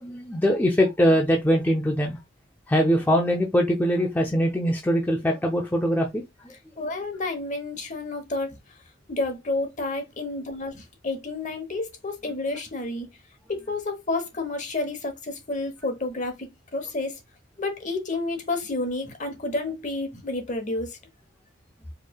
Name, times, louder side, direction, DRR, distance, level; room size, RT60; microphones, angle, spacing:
voice 1, 0.0-2.2 2.7-6.2, equal, 10° left, 0.5 m, -22 dB
voice 2, 6.8-8.6 9.1-13.1 13.5-17.2 17.6-21.0, left 2 dB, 35° left, 0.9 m, -30 dB
4.5 x 3.1 x 2.2 m
head